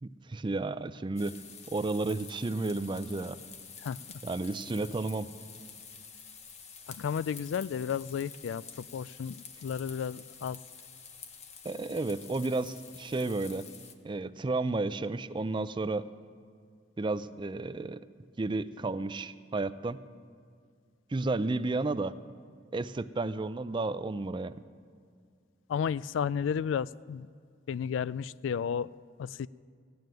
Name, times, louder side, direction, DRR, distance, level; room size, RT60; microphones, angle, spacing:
voice 1, 0.0-1.4 1.7-3.4 4.2-5.3 11.6-13.6 14.0-16.1 17.0-18.0 18.4-20.0 21.1-22.1 22.7-24.6, right 3 dB, 25° right, 13 dB, 0.4 m, -32 dB
sound 1, 1.2-13.9, left 6 dB, 35° left, 1.0 m, -49 dB
voice 2, 3.8-4.2 6.9-10.6 25.7-27.3 27.7-29.5, left 7 dB, 85° left, 20 dB, 0.3 m, -33 dB
16.0 x 9.5 x 9.1 m, 2.1 s
head